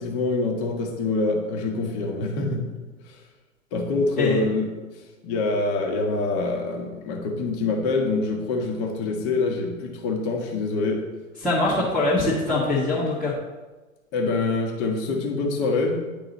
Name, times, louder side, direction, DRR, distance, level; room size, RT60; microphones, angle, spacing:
voice 1, 0.0-2.6 3.0-3.2 3.7-4.7 5.2-11.0 14.1-16.0, left 3 dB, 35° left, 2 dB, 1.4 m, -25 dB
voice 2, 11.4-13.3, left 2 dB, ahead, -10 dB, 1.3 m, -23 dB
10.0 x 3.8 x 4.0 m, 1.3 s
figure-of-eight pair, 110°, 41 cm